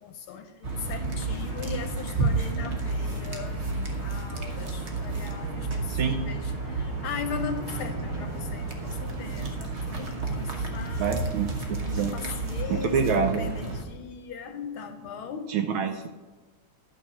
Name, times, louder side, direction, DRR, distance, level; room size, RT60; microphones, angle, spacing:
voice 1, 0.0-11.4 11.8-15.6, left 6 dB, 75° left, 6 dB, 1.6 m, -39 dB
sound 1, 0.6-13.8, right 3 dB, 40° right, 1.1 m, -31 dB
voice 2, 5.9-6.2 11.0-11.5 11.9-12.1 12.7-13.5 15.5-16.1, right 6 dB, 75° right, 5 dB, 1.5 m, -26 dB
11.5 x 5.8 x 5.6 m, 1.3 s
omnidirectional pair, 2.4 m